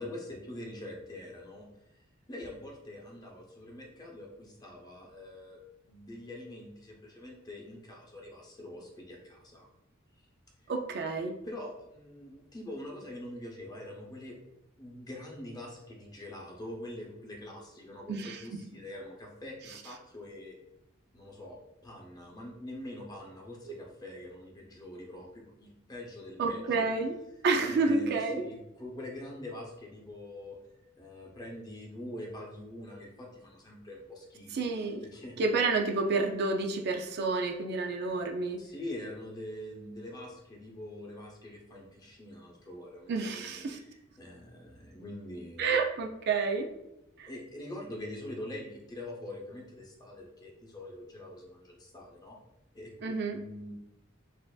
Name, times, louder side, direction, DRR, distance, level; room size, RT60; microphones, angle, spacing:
voice 1, 0.0-1.6 2.3-9.7 10.6-10.7 11.4-14.4 14.8-20.6 21.1-26.9 27.6-30.6 31.0-35.4 38.6-45.7 47.3-52.4 52.7-53.7, left 1 dB, 20° left, -1 dB, 0.7 m, -44 dB
voice 2, 10.7-11.3 18.1-18.6 26.4-27.1 27.4-28.4 34.5-35.0 35.4-38.6 43.1-43.8 45.6-46.7 47.2-47.3 53.0-53.4, right 4 dB, 50° right, 3 dB, 0.4 m, -29 dB
6.5 x 2.6 x 2.3 m, 0.87 s
head